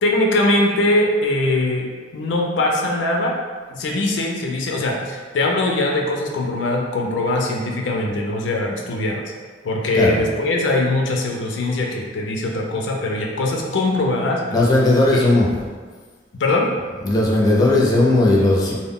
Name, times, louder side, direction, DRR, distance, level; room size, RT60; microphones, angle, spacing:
voice 1, 0.0-1.9 2.1-3.3 3.7-9.2 9.6-14.4 15.1-15.3 16.4-16.7, left 2 dB, 90° left, 0 dB, 0.4 m, -21 dB
voice 2, 14.5-15.5 17.0-18.7, left 2 dB, 20° left, -4 dB, 0.4 m, -16 dB
2.1 x 2.1 x 3.6 m, 1.5 s
head